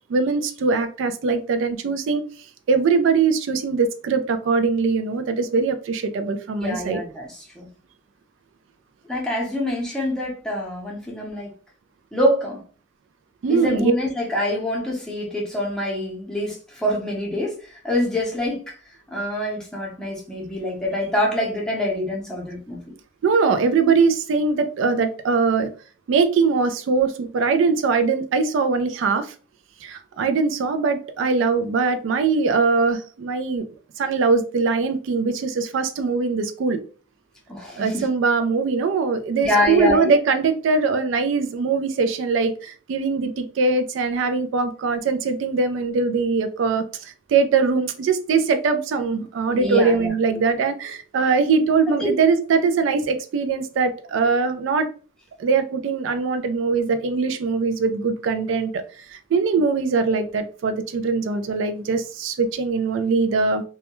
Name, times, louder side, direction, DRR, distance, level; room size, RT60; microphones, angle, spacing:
voice 1, 0.1-2.2 2.7-7.0 13.4-13.9 23.2-25.7 26.1-29.3 29.8-33.7 34.0-36.8 37.8-54.9 55.4-63.6, right 4 dB, 75° right, 0.3 m, -21 dB
voice 2, 6.6-7.7 9.1-11.5 12.1-12.6 13.5-18.8 19.1-22.8 37.5-38.0 39.4-40.1 49.5-50.1 51.9-52.1, left 1 dB, 5° left, 0.6 m, -25 dB
2.2 x 2.1 x 2.9 m
head